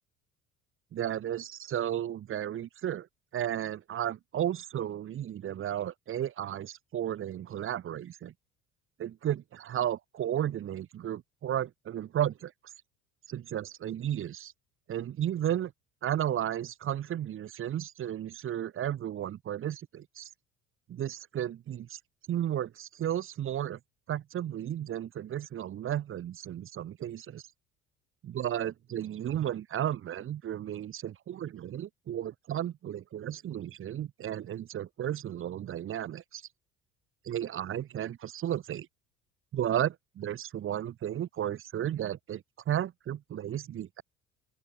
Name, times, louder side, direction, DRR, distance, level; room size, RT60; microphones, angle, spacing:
voice 1, 0.9-3.1 3.3-8.3 9.0-12.5 13.3-14.5 14.9-15.7 16.0-20.3 20.9-22.0 22.3-23.8 24.1-27.4 28.2-36.4 37.2-38.9 39.5-44.0, right 11 dB, 35° right, 0.9 m, -33 dB
open air
figure-of-eight pair, 60°, 38 cm